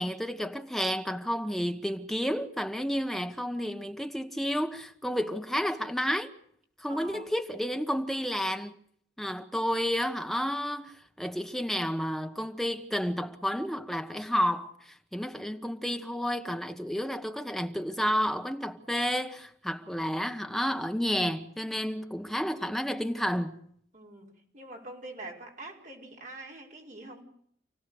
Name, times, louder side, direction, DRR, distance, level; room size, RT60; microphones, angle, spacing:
voice 1, 0.0-6.3 6.8-8.7 9.2-23.6, equal, ahead, 1.3 m, -31 dB
voice 2, 6.9-7.3 23.9-27.2, right 2 dB, 45° right, 5.4 m, -45 dB
29.0 x 17.5 x 6.6 m
head